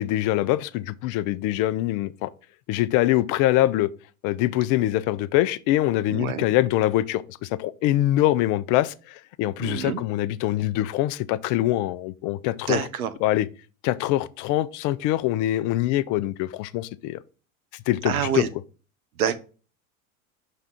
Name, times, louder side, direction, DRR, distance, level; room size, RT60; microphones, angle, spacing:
voice 1, 0.0-2.3 2.7-3.9 4.2-12.9 13.2-13.5 13.8-17.2 17.9-18.4, left 15 dB, 45° left, 0.5 m, -24 dB
voice 2, 6.1-6.5 9.6-10.0 12.7-13.1 18.0-18.5 19.2-19.4, right 8 dB, 85° right, 0.8 m, -26 dB
5.8 x 3.6 x 5.6 m
hypercardioid pair, 90°, 42 cm